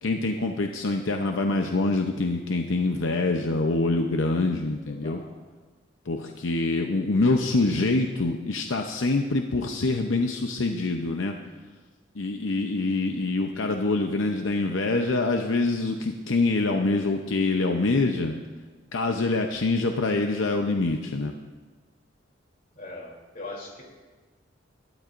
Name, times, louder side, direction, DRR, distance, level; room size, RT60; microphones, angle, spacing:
voice 1, 0.0-5.2 6.1-11.3 12.2-18.4 18.9-21.3, left 3 dB, 75° left, 3 dB, 0.7 m, -25 dB
voice 2, 4.8-5.4 22.7-23.8, left 2 dB, 45° left, -2 dB, 3.2 m, -40 dB
21.5 x 12.0 x 2.6 m, 1.3 s
head